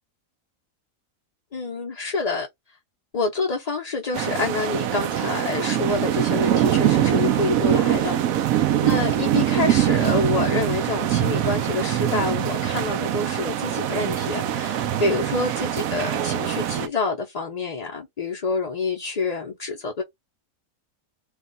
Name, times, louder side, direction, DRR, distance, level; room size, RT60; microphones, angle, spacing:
voice 1, 1.5-2.5 3.1-8.2 8.5-20.0, left 3 dB, 40° left, 0.6 m, -27 dB
sound 1, 4.1-16.9, right 11 dB, 90° right, 1.0 m, -23 dB
3.4 x 2.3 x 3.9 m
omnidirectional pair, 1.4 m